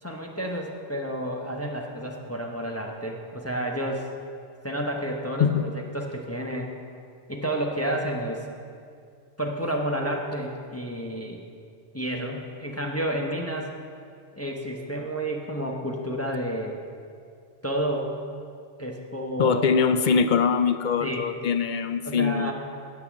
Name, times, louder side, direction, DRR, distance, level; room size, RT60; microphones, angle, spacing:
voice 1, 0.0-4.1 4.6-6.7 7.3-8.5 9.4-11.4 11.9-13.7 14.4-16.8 17.6-18.1 18.8-19.6 21.0-21.3 22.0-22.5, right 1 dB, 15° left, 0 dB, 0.8 m, -30 dB
voice 2, 19.4-22.5, left 6 dB, 60° left, 11 dB, 0.5 m, -22 dB
9.6 x 8.3 x 7.3 m, 2.3 s
omnidirectional pair, 1.2 m